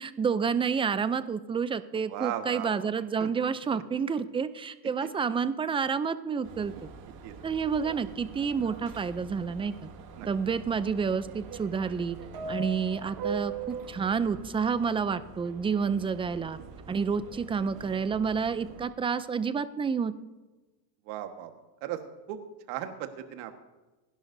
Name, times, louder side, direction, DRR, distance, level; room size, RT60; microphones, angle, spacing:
voice 1, 0.0-6.9 7.4-9.9 10.3-12.2 12.5-16.6 16.9-20.1, right 6 dB, 10° right, 13 dB, 0.4 m, -29 dB
voice 2, 1.9-2.9 3.2-3.3 3.7-3.8 5.0-5.1 7.2-7.3 10.2-10.3 15.9-16.1 21.1-21.5 21.8-22.0 22.3-22.4 22.7-23.6, right 12 dB, 75° right, 7 dB, 1.6 m, -37 dB
Subway metro underground, 6.4-18.8, right 5 dB, 50° right, 2.0 m, -42 dB
27.0 x 11.0 x 2.7 m, 1.2 s
supercardioid pair, 125°, 46 cm